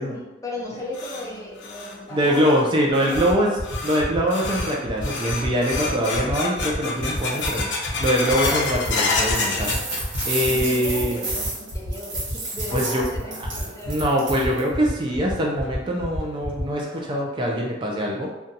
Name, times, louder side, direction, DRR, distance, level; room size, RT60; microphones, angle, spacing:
voice 1, 0.0-2.6 2.9-3.5 10.3-14.0, left 1 dB, 15° left, -4 dB, 0.6 m, -36 dB
sound 1, 0.5-10.7 11.0-11.6 12.0-12.1 12.8-12.9 14.5-14.6 15.1-15.2 15.6-15.7 16.2-16.3 16.8-17.2, left 3 dB, 75° left, 0.5 m, -30 dB
voice 2, 2.1-3.5 3.8-7.7 8.0-9.7 10.2-11.2 12.7-13.0 13.4-13.5 13.9-18.3, equal, 25° right, -2 dB, 0.3 m, -23 dB
sound 2, 3.1-16.6, left 1 dB, 55° right, 1.0 m, -35 dB
sound 3, 7.1-7.6 7.9-14.7, right 2 dB, 85° right, 1.3 m, -32 dB
2.6 x 2.3 x 3.8 m, 1.0 s
head